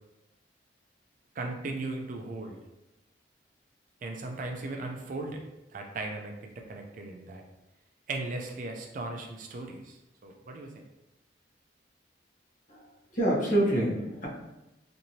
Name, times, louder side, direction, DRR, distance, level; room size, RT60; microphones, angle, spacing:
voice 1, 1.4-2.6 4.0-5.4 5.7-7.4 8.1-10.8, right 2 dB, 45° right, 2 dB, 0.4 m, -37 dB
voice 2, 13.1-14.3, right 1 dB, 45° left, -5 dB, 0.9 m, -26 dB
2.9 x 2.6 x 2.7 m, 0.95 s
head